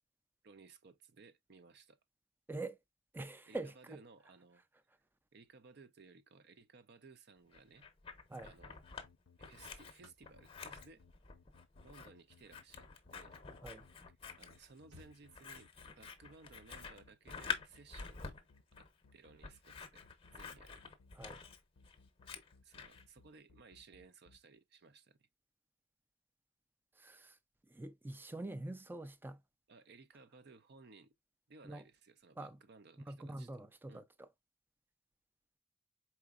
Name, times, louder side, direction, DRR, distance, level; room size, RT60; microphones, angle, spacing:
voice 1, 0.4-2.0 3.5-4.6 5.3-7.9 8.4-8.8 9.4-11.0 11.8-13.4 14.4-18.4 18.7-20.0 20.3-20.8 22.6-25.3 29.7-31.1 31.5-33.6 33.9-34.1, right 4 dB, 60° right, 0.6 m, -59 dB
voice 2, 3.1-4.0 8.3-8.5 13.6-13.9 21.2-21.4 27.0-27.4 27.6-29.4 31.6-31.8 32.4-32.6 33.1-34.3, right 2 dB, 10° right, 0.4 m, -45 dB
Scissors, 7.5-9.1 9.4-23.0, left 6 dB, 30° left, 0.8 m, -48 dB
sound 1, 8.8-24.4, left 4 dB, 70° left, 0.4 m, -65 dB
sound 2, 9.8-13.7 14.3-14.4 14.5-15.8 17.5-17.7, left 1 dB, 85° right, 1.9 m, -67 dB
4.4 x 3.9 x 2.3 m
head